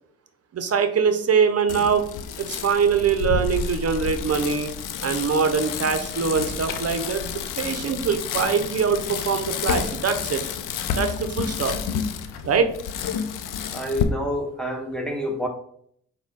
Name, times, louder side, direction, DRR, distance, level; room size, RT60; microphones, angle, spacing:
voice 1, 0.5-2.1 2.4-4.7 5.0-10.4 10.9-11.8 12.4-12.7, right 6 dB, 50° right, 0.7 m, -23 dB
Bicycle, 1.7-14.0, left 7 dB, 80° left, 0.5 m, -30 dB
voice 2, 13.7-15.5, equal, ahead, 1.1 m, -28 dB
6.3 x 2.2 x 3.6 m
supercardioid pair, 45°, 32 cm